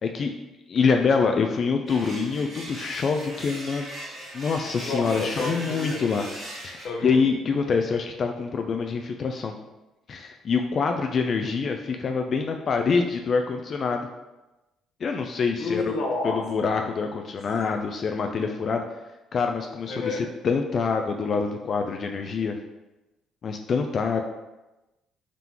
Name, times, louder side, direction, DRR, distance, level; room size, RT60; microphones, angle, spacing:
voice 1, 0.0-0.3 0.7-3.9 4.3-6.2 6.6-9.5 10.1-14.1 15.0-15.9 16.2-18.8 19.3-20.2 20.4-22.5 23.4-24.2, left 5 dB, 45° left, 4 dB, 0.3 m, -25 dB
sound 1, 1.9-6.9, right 1 dB, 50° right, 1.4 m, -39 dB
voice 2, 4.8-6.0 6.8-7.3 15.6-16.4 19.9-20.3, left 3 dB, 60° left, 1 dB, 0.8 m, -30 dB
3.7 x 3.6 x 2.9 m, 1.0 s
cardioid pair, 105°, 0 cm